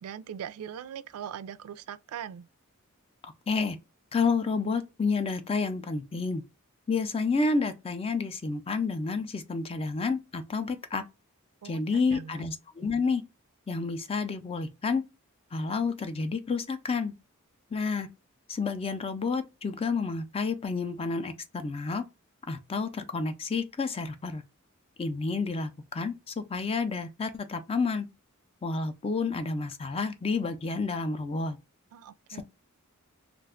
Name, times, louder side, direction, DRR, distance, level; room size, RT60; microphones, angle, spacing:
voice 1, 0.0-2.5 11.6-12.5 31.9-32.4, right 9 dB, 85° right, 0.3 m, -41 dB
voice 2, 3.5-3.8 4.1-6.4 6.9-11.0 11.6-13.2 13.7-15.0 15.5-17.1 17.7-18.1 18.5-22.0 22.5-24.4 25.0-28.1 28.6-31.6 32.3-32.4, left 4 dB, 25° left, 0.4 m, -30 dB
2.4 x 2.2 x 3.5 m
head